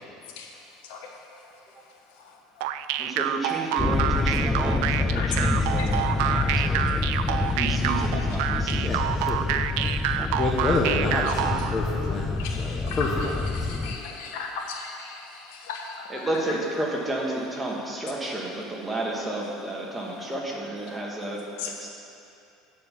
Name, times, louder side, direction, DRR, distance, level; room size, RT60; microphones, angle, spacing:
voice 1, 2.2-2.7 5.1-5.5 5.8-5.9 6.3-6.5 7.2-7.6 9.8-10.0 12.4-13.0 13.5-16.3 21.6-21.7, left 5 dB, 80° left, 1 dB, 1.1 m, -37 dB
sound 1, 2.6-11.8, right 11 dB, 80° right, 0.3 m, -27 dB
voice 2, 3.0-6.9 7.5-9.0 16.1-21.9, right 1 dB, 10° right, -3 dB, 1.3 m, -32 dB
sound 2, 3.8-14.0, left 3 dB, 10° left, 0.3 m, -27 dB
voice 3, 8.8-9.4 10.4-14.3, left 3 dB, 30° left, -3 dB, 0.8 m, -29 dB
9.2 x 4.4 x 7.0 m, 2.7 s
cardioid pair, 135°, 0 cm